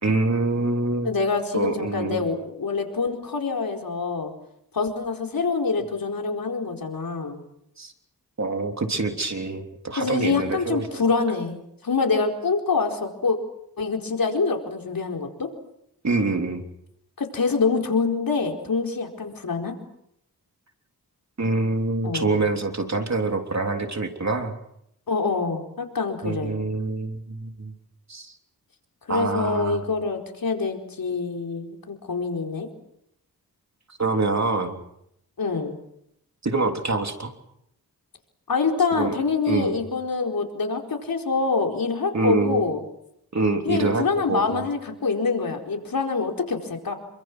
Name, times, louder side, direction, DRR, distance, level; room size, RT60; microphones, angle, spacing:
voice 1, 0.0-1.1 1.5-2.2 7.8-7.9 8.4-11.0 16.0-16.6 21.4-24.5 26.2-27.7 28.1-28.3 29.1-29.8 34.0-34.8 36.4-37.3 38.9-39.1 39.5-39.8 42.1-42.6 43.3-44.7, right 3 dB, 45° right, 4 dB, 3.3 m, -25 dB
voice 2, 1.0-4.3 4.7-7.4 10.0-13.4 13.8-15.5 17.2-19.8 22.0-22.4 25.1-26.5 29.1-32.7 35.4-35.7 38.5-42.8 43.6-46.9, left 4 dB, 65° left, 2 dB, 4.6 m, -25 dB
28.0 x 24.5 x 6.3 m, 0.77 s
cardioid pair, 65°, 37 cm